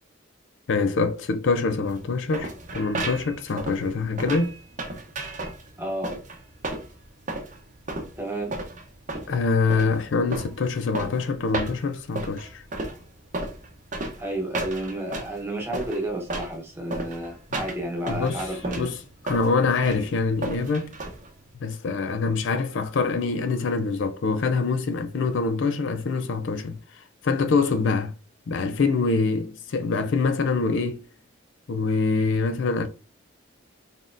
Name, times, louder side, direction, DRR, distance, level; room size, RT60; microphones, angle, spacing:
voice 1, 0.7-4.5 9.3-12.6 18.1-20.9 21.6-28.1 28.5-31.0 31.7-32.9, left 4 dB, 65° left, 0.4 m, -25 dB
sound 1, 1.9-21.5, right 2 dB, 35° right, 0.7 m, -34 dB
voice 2, 5.8-6.2 8.2-8.6 14.2-18.9, right 1 dB, 10° right, 1.0 m, -31 dB
4.1 x 3.5 x 2.5 m
head